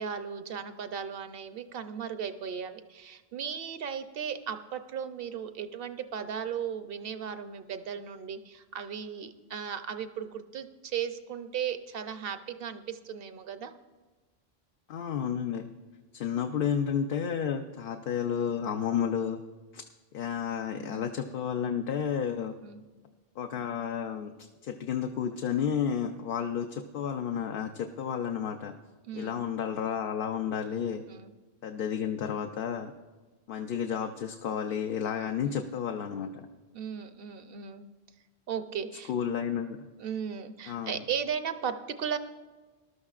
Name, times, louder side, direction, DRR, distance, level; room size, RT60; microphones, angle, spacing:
voice 1, 0.0-13.7 16.5-16.7 20.7-21.1 22.6-22.8 29.1-29.4 31.1-31.3 35.4-35.6 36.7-37.9 38.5-39.1 40.0-42.2, right 7 dB, 65° right, 10 dB, 0.8 m, -36 dB
voice 2, 14.9-15.7 16.1-19.4 19.7-19.9 20.1-22.5 23.4-28.7 29.1-31.0 31.6-32.9 33.5-36.5 39.1-39.9 40.7-41.0, left 8 dB, 65° left, 5 dB, 0.7 m, -31 dB
19.5 x 12.0 x 2.4 m, 1.3 s
omnidirectional pair, 1.1 m